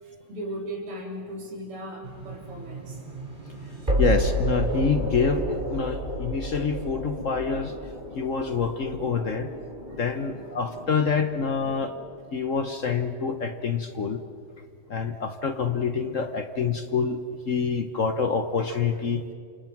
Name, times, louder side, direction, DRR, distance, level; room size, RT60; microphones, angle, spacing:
voice 1, 0.0-3.0 5.9-6.4 8.0-8.3 9.8-11.2 11.6-11.9, right 1 dB, 90° right, -1 dB, 4.7 m, -39 dB
sound 1, 2.0-13.1, right 1 dB, 20° right, 4.9 m, -31 dB
voice 2, 4.0-7.7 8.2-9.5 9.9-11.9 12.3-14.2 14.9-17.2 17.5-19.2, left 5 dB, 55° left, 8 dB, 0.9 m, -26 dB
28.0 x 27.5 x 6.0 m, 2.3 s
omnidirectional pair, 2.4 m